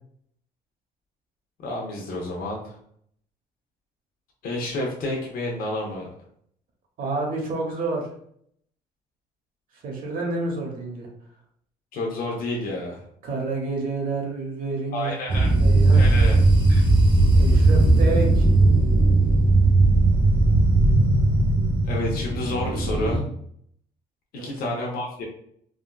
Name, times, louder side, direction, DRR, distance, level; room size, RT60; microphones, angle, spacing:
voice 1, 1.6-2.8 4.4-6.1 11.9-13.0 14.9-15.5 15.9-16.4 16.7-16.8 21.9-23.2 24.3-25.2, left 1 dB, 60° left, -1 dB, 0.7 m, -30 dB
voice 2, 7.0-8.1 9.8-11.1 13.2-15.1 15.6-16.1 17.3-18.5 24.3-24.7, right 3 dB, 55° right, 0 dB, 0.9 m, -29 dB
sound 1, 15.3-23.2, right 2 dB, 30° right, 0.6 m, -18 dB
3.5 x 2.2 x 2.2 m, 0.65 s
cardioid pair, 110°, 17 cm